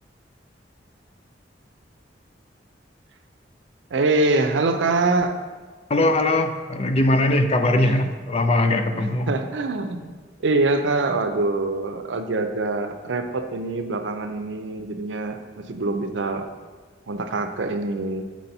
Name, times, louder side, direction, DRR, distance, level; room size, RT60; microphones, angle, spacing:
voice 1, 3.9-5.4 7.8-7.9 9.0-10.1 10.4-16.5 17.1-18.2, right 2 dB, 80° right, 7 dB, 0.6 m, -24 dB
voice 2, 5.9-9.3, left 1 dB, 35° left, 7 dB, 0.4 m, -20 dB
6.1 x 4.3 x 5.4 m, 1.5 s
head